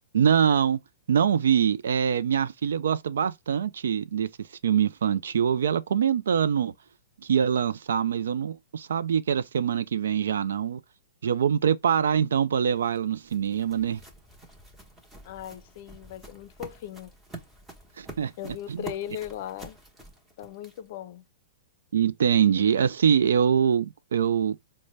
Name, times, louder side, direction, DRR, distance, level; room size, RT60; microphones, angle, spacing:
voice 1, 0.1-0.8 1.1-4.3 4.6-6.7 7.2-10.8 11.2-14.0 18.0-18.3 18.7-18.8 21.9-24.6, right 8 dB, 80° right, 0.4 m, -24 dB
sound 1, 12.8-21.0, right 2 dB, 10° right, 0.9 m, -47 dB
voice 2, 15.2-17.1 18.4-19.8 20.4-21.2, left 11 dB, 50° left, 0.5 m, -38 dB
4.0 x 2.1 x 3.1 m
hypercardioid pair, 135°, 0 cm